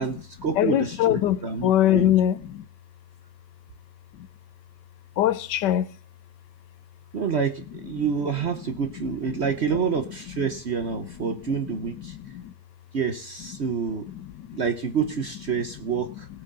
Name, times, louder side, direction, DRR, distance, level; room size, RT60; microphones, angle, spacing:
voice 1, 0.0-2.1 7.1-12.2 12.9-14.0 14.5-16.3, right 6 dB, 50° right, 0.9 m, -28 dB
voice 2, 0.5-2.6 5.2-5.9 11.2-11.4 12.1-12.5 14.1-14.6, left 12 dB, 90° left, 1.4 m, -23 dB
17.5 x 6.2 x 5.3 m
omnidirectional pair, 1.8 m